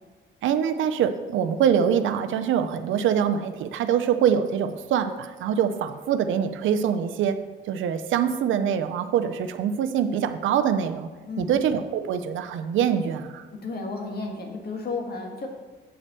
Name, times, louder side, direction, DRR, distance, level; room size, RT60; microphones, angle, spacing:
voice 1, 0.4-7.4 7.7-11.1 11.4-13.4, right 8 dB, 75° right, 9 dB, 0.6 m, -24 dB
voice 2, 11.3-11.6 13.6-15.5, left 3 dB, 55° left, 2 dB, 1.7 m, -32 dB
7.9 x 4.3 x 6.6 m, 1.3 s
cardioid pair, 90°, 20 cm